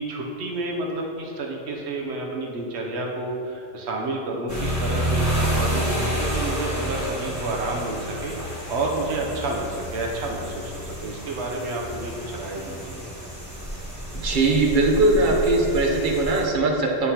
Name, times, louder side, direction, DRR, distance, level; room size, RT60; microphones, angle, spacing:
voice 1, 0.0-13.0, right 2 dB, 85° right, -1 dB, 1.0 m, -30 dB
sound 1, 4.5-16.4, right 1 dB, 15° right, 1.0 m, -29 dB
voice 2, 14.2-17.1, right 2 dB, 55° right, 1 dB, 0.8 m, -20 dB
9.4 x 3.6 x 2.8 m, 2.6 s
omnidirectional pair, 1.1 m